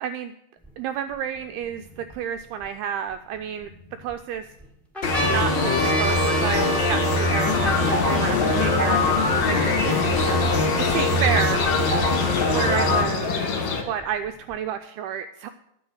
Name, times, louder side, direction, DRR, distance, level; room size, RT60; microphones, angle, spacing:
voice 1, 0.0-0.3 0.8-1.9 2.1-3.7 4.0-4.5 5.3-9.6 9.9-11.7 12.5-13.3 13.9-15.5, right 8 dB, 85° right, 9 dB, 2.2 m, -30 dB
sound 1, 0.6-0.7 1.4-2.7 3.4-4.1 4.6-4.7 4.9-10.6 11.3-11.4 11.5-12.6 13.5-14.5, right 1 dB, ahead, 0.3 m, -32 dB
sound 2, 5.0-13.0, left 2 dB, 80° left, 1.0 m, -22 dB
sound 3, 7.4-13.8, left 5 dB, 60° left, 2.1 m, -27 dB
10.5 x 7.1 x 7.7 m, 0.81 s
omnidirectional pair, 4.9 m